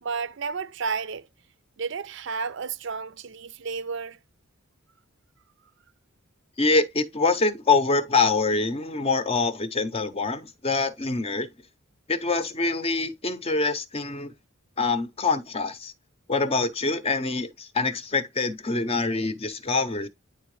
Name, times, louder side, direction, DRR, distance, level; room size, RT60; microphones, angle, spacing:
voice 1, 0.0-1.3 1.8-4.2, right 5 dB, 60° right, 0.5 m, -32 dB
voice 2, 6.6-11.5 12.1-14.3 14.8-15.9 16.3-20.1, left 3 dB, 30° left, 0.7 m, -25 dB
9.7 x 3.7 x 3.1 m
head